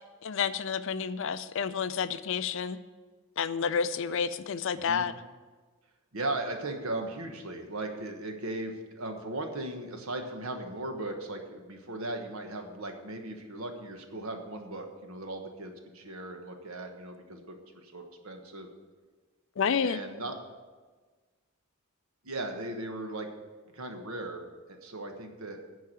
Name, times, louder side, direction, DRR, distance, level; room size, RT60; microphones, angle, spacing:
voice 1, 0.2-2.8 3.4-5.1 19.6-20.0, left 6 dB, 65° left, 13 dB, 0.5 m, -30 dB
voice 2, 6.1-18.7 19.8-20.3 22.2-23.3 23.7-24.4 24.7-25.6, right 2 dB, 85° right, 4 dB, 1.3 m, -37 dB
10.5 x 4.7 x 8.1 m, 1.4 s
head